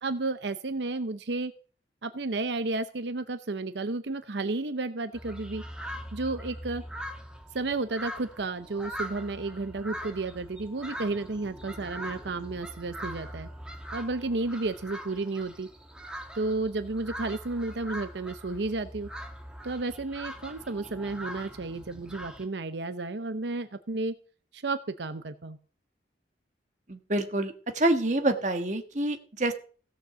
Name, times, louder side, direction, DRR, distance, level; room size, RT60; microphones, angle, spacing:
voice 1, 0.0-1.5 2.0-5.6 6.1-6.8 7.5-13.5 13.9-15.7 16.3-19.1 19.6-24.1 24.5-25.6, right 3 dB, 80° right, 10 dB, 0.7 m, -32 dB
sound 1, 5.1-22.5, equal, 5° right, 1.3 m, -42 dB
voice 2, 26.9-29.5, right 1 dB, 40° right, 6 dB, 1.4 m, -27 dB
16.0 x 6.5 x 6.8 m, 0.42 s
head